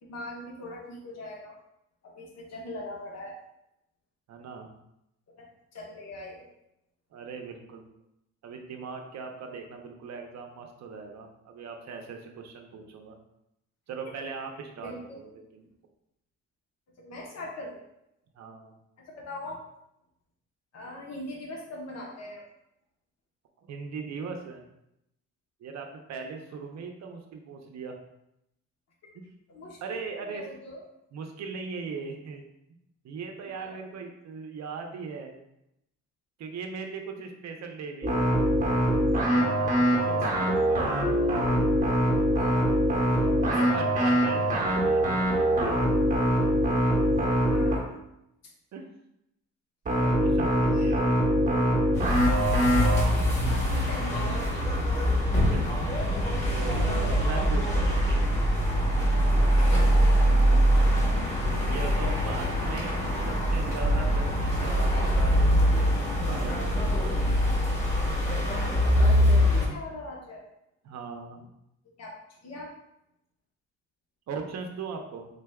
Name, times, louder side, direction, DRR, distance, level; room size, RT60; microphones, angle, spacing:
voice 1, 0.0-1.6 2.0-3.4 5.4-5.5 5.7-6.4 14.8-15.2 17.0-17.8 19.1-19.6 20.7-22.4 29.5-30.8 33.5-33.8 40.3-40.5 42.3-42.7 43.2-43.5 47.5-47.9 50.7-51.0 53.3-54.7 59.6-60.7 64.9-65.1 68.5-70.4 72.0-72.2 72.4-72.7, left 1 dB, 60° left, -1 dB, 1.1 m, -41 dB
voice 2, 4.3-4.7 7.1-7.8 8.4-13.2 13.9-15.7 18.4-18.8 23.7-24.6 25.6-28.0 29.8-30.5 31.1-32.5 33.0-35.4 36.4-38.4 39.2-41.0 43.4-45.9 48.7-48.9 49.9-51.0 55.5-56.0 56.5-58.3 59.2-59.6 61.5-63.0 63.3-66.8 70.8-71.5 74.3-75.3, right 5 dB, 65° right, 4 dB, 0.7 m, -39 dB
sound 1, 38.0-47.9 49.9-53.0, equal, 25° right, 1.0 m, -24 dB
sound 2, 51.9-69.7, equal, 20° left, 1.3 m, -23 dB
3.9 x 3.3 x 2.3 m, 0.83 s
cardioid pair, 90°, 30 cm